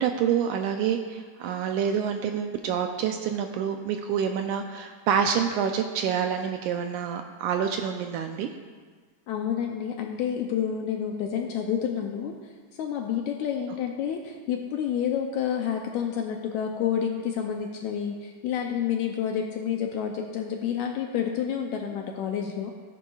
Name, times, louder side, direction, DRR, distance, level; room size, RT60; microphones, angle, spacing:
voice 1, 0.0-8.5, right 8 dB, 80° right, 5 dB, 1.9 m, -27 dB
voice 2, 9.3-12.3 12.8-22.7, left 8 dB, 80° left, 2 dB, 1.8 m, -29 dB
15.5 x 9.8 x 2.4 m, 1.5 s
omnidirectional pair, 3.8 m